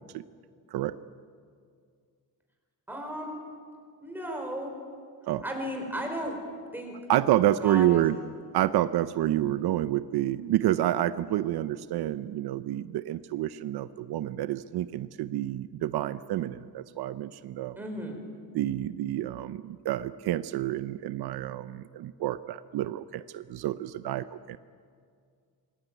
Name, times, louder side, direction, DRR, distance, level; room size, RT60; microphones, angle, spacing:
voice 1, 2.9-3.4 4.0-4.7 5.4-6.4 6.7-7.0 7.6-8.2 17.8-18.2, equal, 5° right, 2 dB, 4.7 m, -35 dB
voice 2, 7.1-8.2 8.5-17.8 18.5-24.6, right 13 dB, 80° right, 13 dB, 0.8 m, -28 dB
26.0 x 22.0 x 9.3 m, 2.1 s
cardioid pair, 175°, 38 cm